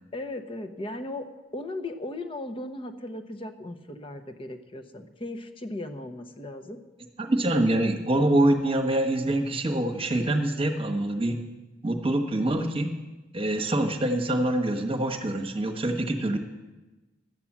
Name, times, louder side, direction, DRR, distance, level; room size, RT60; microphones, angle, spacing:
voice 1, 0.1-6.8, left 2 dB, 30° left, 8 dB, 0.9 m, -37 dB
voice 2, 7.2-11.4 11.8-12.9 13.3-16.4, right 1 dB, 30° right, 5 dB, 1.2 m, -25 dB
12.5 x 8.6 x 7.4 m, 1.2 s
head